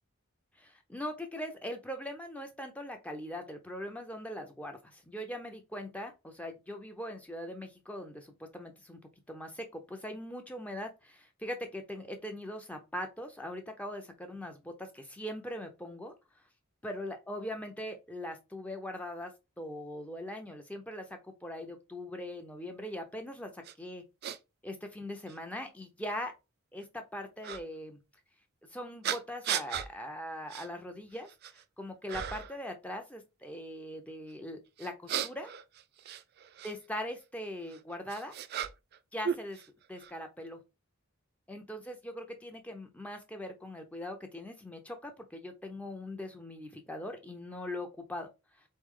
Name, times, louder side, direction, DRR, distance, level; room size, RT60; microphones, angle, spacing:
voice 1, 0.6-9.0 9.3-16.1 16.8-19.3 19.6-24.0 24.6-26.3 26.7-28.0 28.7-35.5 36.6-38.3 39.1-39.6 39.9-40.6 41.5-48.3, left 1 dB, 5° left, 0.5 m, -41 dB
sound 1, 23.6-23.7 24.2-24.4 25.3-25.4 27.4-27.6 29.0-29.9 30.5-30.7 31.1-31.6 32.1-32.6 34.8-36.7 37.7-39.0 39.2-40.1, right 9 dB, 50° right, 0.4 m, -36 dB
4.0 x 3.2 x 3.6 m
head